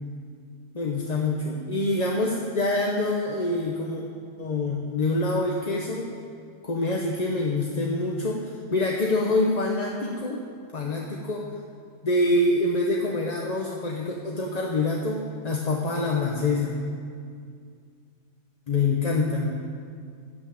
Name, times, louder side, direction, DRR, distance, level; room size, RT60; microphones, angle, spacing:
voice 1, 0.7-4.0 4.4-6.1 6.6-10.4 10.7-11.4 12.0-16.8 18.7-19.6, left 2 dB, 35° left, -1 dB, 0.9 m, -26 dB
12.5 x 8.1 x 8.7 m, 2.2 s
omnidirectional pair, 1.5 m